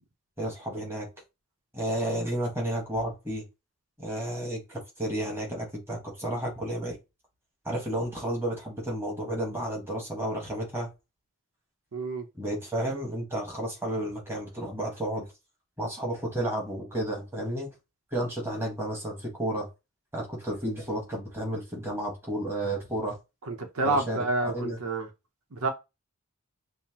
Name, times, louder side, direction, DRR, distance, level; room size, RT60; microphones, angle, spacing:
voice 1, 0.4-1.1 1.7-3.4 4.0-7.0 7.6-10.9 12.3-15.3 15.8-17.7 18.1-19.7 20.1-23.2 23.8-24.8, right 1 dB, 10° right, 1.4 m, -32 dB
voice 2, 11.9-12.2 23.5-25.1 25.5-25.7, right 2 dB, 80° right, 0.8 m, -28 dB
5.6 x 2.1 x 2.9 m
head